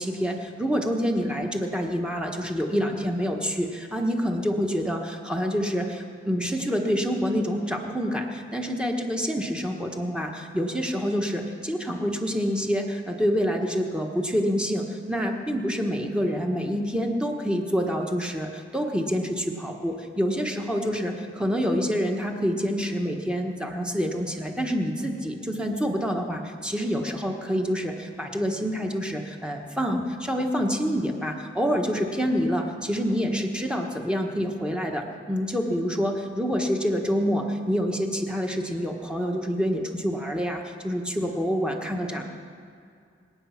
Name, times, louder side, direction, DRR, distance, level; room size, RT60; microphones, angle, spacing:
voice 1, 0.0-42.3, equal, 5° right, 2 dB, 1.3 m, -27 dB
25.5 x 8.7 x 5.8 m, 2.4 s
head